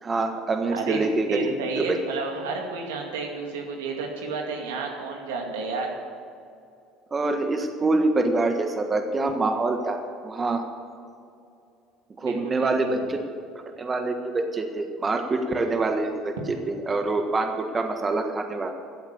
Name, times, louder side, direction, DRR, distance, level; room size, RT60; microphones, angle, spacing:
voice 1, 0.0-1.5 1.8-1.9 7.1-10.6 12.2-13.2 13.8-18.7, right 2 dB, 30° right, 5 dB, 1.5 m, -25 dB
voice 2, 0.7-5.9 12.2-13.0, right 4 dB, 80° right, 1 dB, 2.3 m, -31 dB
14.0 x 8.1 x 8.4 m, 2.5 s
hypercardioid pair, 75°, 0 cm